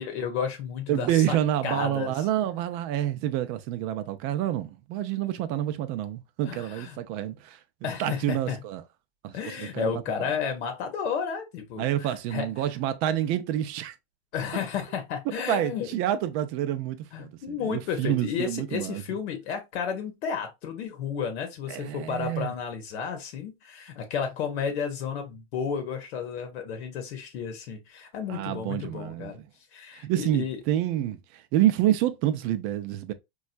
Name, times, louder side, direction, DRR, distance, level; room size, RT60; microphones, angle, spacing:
voice 1, 0.0-1.4 1.6-2.2 6.5-7.0 7.8-8.6 9.3-12.5 14.3-15.9 17.1-29.4 29.7-30.6, left 7 dB, 75° left, 0.8 m, -32 dB
voice 2, 0.9-7.6 8.0-8.8 9.2-10.3 11.8-13.9 15.5-19.0 21.7-22.5 28.3-29.3 29.9-33.1, right 12 dB, 50° right, 0.5 m, -28 dB
4.2 x 2.3 x 2.4 m
supercardioid pair, 120°, 32 cm